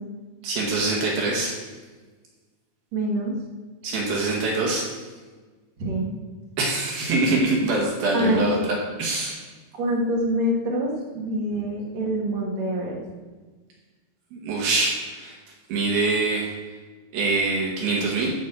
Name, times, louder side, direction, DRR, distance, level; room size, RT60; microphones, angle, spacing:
voice 1, 0.4-1.6 3.8-4.9 6.6-8.6 9.0-9.4 14.3-15.3 15.7-16.5 17.1-18.3, right 3 dB, 75° right, -2 dB, 3.7 m, -24 dB
voice 2, 2.9-3.3 5.8-6.1 8.1-8.6 9.8-13.0, equal, 50° right, -3 dB, 3.1 m, -25 dB
13.5 x 5.4 x 7.2 m, 1.3 s
omnidirectional pair, 4.3 m